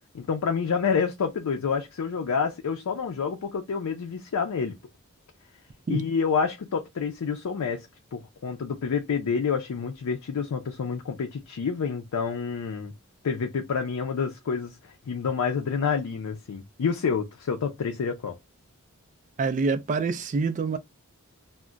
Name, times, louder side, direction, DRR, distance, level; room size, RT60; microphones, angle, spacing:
voice 1, 0.1-4.8 5.9-12.9 13.2-18.4, left 6 dB, 90° left, 0.4 m, -28 dB
voice 2, 19.4-20.8, right 4 dB, 35° right, 0.3 m, -26 dB
2.3 x 2.1 x 3.7 m
head